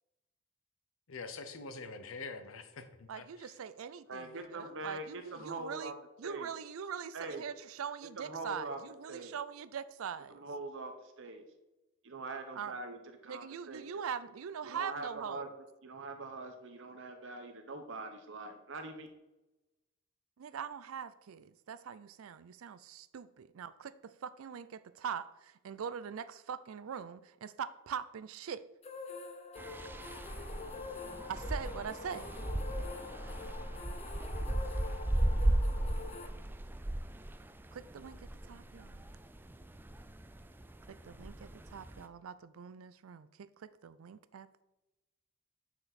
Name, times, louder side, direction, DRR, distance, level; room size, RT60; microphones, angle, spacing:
voice 1, 1.1-3.5, left 3 dB, 75° left, 9 dB, 0.8 m, -45 dB
voice 2, 3.1-5.9 6.2-10.4 12.6-12.8 13.3-15.5 20.4-28.7 31.3-32.3 35.8-35.9 37.7-38.2 38.5-39.0 40.9-44.5, right 7 dB, 80° right, 15 dB, 0.4 m, -42 dB
voice 3, 4.1-5.9 6.2-6.5 7.1-7.4 8.2-8.8 9.1-9.4 10.3-11.4 12.0-14.0 14.6-15.5 15.8-19.1, right 3 dB, 65° right, 6 dB, 1.0 m, -43 dB
sound 1, 28.8-36.3, left 4 dB, 30° left, 0.6 m, -46 dB
sound 2, 29.6-42.0, right 1 dB, 10° right, 0.4 m, -36 dB
9.7 x 4.7 x 4.1 m, 1.0 s
head